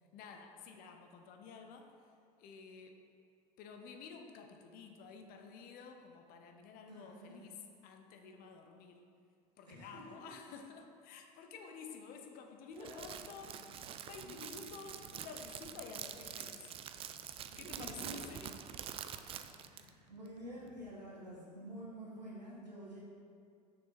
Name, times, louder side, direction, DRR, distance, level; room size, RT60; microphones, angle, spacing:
voice 1, 0.1-2.0 2.4-3.0 3.6-9.0 9.6-16.7 17.6-18.6, left 5 dB, 45° left, 4 dB, 0.8 m, -51 dB
voice 2, 6.9-7.4 9.7-10.0 12.7-13.1 14.2-14.3 17.6-18.4 19.7-23.0, right 1 dB, 85° right, -6 dB, 1.8 m, -49 dB
Crackle, 12.8-19.9, right 9 dB, 30° right, 0.4 m, -46 dB
Growling, 13.2-20.9, left 2 dB, 80° left, 0.9 m, -63 dB
6.6 x 6.2 x 4.2 m, 2.4 s
figure-of-eight pair, 70°, 21 cm